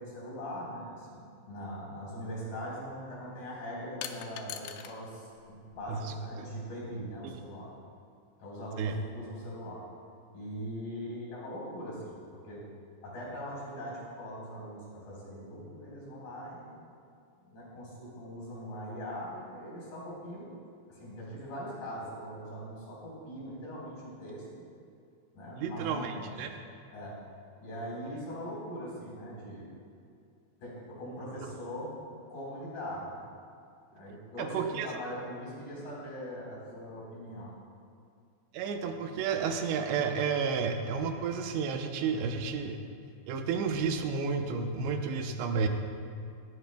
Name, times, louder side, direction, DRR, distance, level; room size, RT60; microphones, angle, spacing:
voice 1, 0.0-7.7 8.4-9.8 10.3-12.2 12.4-12.6 13.0-16.7 17.4-20.5 20.9-24.5 25.3-26.3 26.9-27.2 27.6-29.7 30.6-31.9 32.3-33.2 33.9-37.5, equal, 45° left, -5 dB, 5.3 m, -41 dB
sound 1, 2.1-2.2 4.0-5.0 5.3-6.2, left 10 dB, 80° left, 2.8 m, -42 dB
voice 2, 5.9-6.5 7.2-7.4 8.8-9.0 25.6-26.6 33.9-35.0 38.5-42.8 43.3-45.7, right 5 dB, 75° right, 4 dB, 2.8 m, -32 dB
19.5 x 17.0 x 2.3 m, 2.4 s
omnidirectional pair, 5.6 m